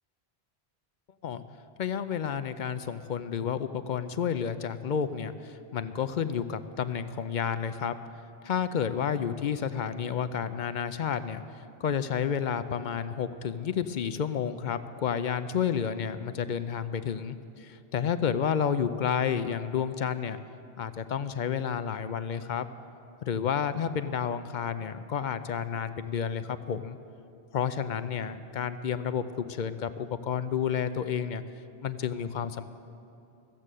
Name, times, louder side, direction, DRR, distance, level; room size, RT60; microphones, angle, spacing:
voice 1, 1.8-8.0 8.4-11.4 11.8-20.4 20.8-22.7 23.3-27.0 27.5-31.4 31.8-32.7, left 7 dB, 55° left, 12 dB, 0.6 m, -30 dB
15.0 x 7.6 x 8.3 m, 2.7 s
omnidirectional pair, 1.1 m